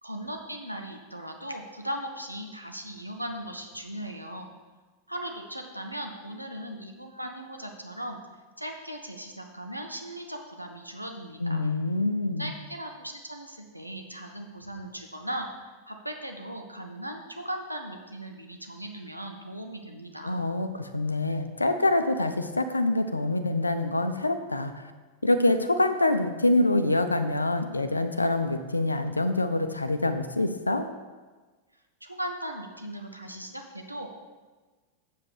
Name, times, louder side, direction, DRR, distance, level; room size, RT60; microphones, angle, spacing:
voice 1, 0.0-4.5 5.1-8.2 8.6-11.6 12.4-15.5 15.9-20.4 32.0-34.1, right 1 dB, 90° right, 3 dB, 0.9 m, -38 dB
voice 2, 11.4-12.5 20.2-24.8 25.2-30.9, left 2 dB, 80° left, 9 dB, 0.5 m, -25 dB
7.3 x 6.7 x 4.8 m, 1.3 s
figure-of-eight pair, 90°, 0 cm